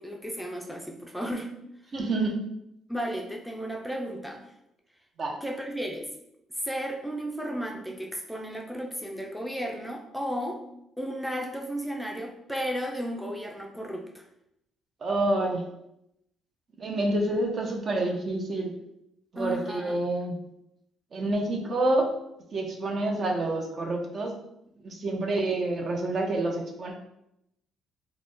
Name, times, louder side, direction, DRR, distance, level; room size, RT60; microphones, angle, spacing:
voice 1, 0.0-1.5 2.9-4.4 5.4-6.1 6.6-10.6 11.0-14.2 19.4-19.9, equal, ahead, 1 dB, 0.4 m, -34 dB
voice 2, 1.9-2.4 5.2-5.4 15.0-15.6 16.8-18.7 19.3-20.4 21.1-22.1 22.5-24.3 24.8-26.9, right 2 dB, 50° right, 2 dB, 0.5 m, -28 dB
2.4 x 2.1 x 3.5 m, 0.81 s
supercardioid pair, 70°, 0 cm